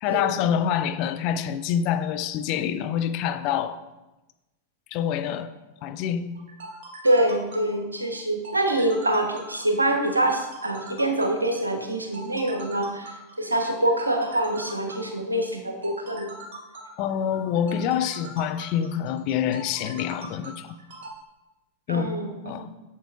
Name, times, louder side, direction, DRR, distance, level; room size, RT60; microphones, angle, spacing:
voice 1, 0.0-3.8 4.9-5.5 5.8-6.3 17.0-20.8 21.9-22.1 22.5-22.7, left 9 dB, 40° left, 10 dB, 0.4 m, -26 dB
sound 1, 6.3-21.1, right 2 dB, 55° right, 1.3 m, -42 dB
voice 2, 7.0-16.4 21.9-22.6, right 1 dB, 80° right, 5 dB, 0.9 m, -25 dB
8.3 x 7.2 x 2.5 m, 1.0 s
figure-of-eight pair, 90°, 0 cm